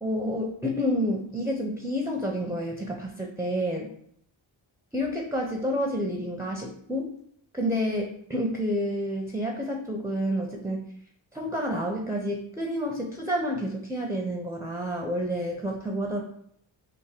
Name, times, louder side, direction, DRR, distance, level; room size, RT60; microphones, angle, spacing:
voice 1, 0.0-3.9 4.9-7.1 7.5-10.8 11.3-16.2, equal, 5° right, 0 dB, 0.6 m, -29 dB
3.7 x 2.6 x 4.3 m, 0.68 s
cardioid pair, 50°, 48 cm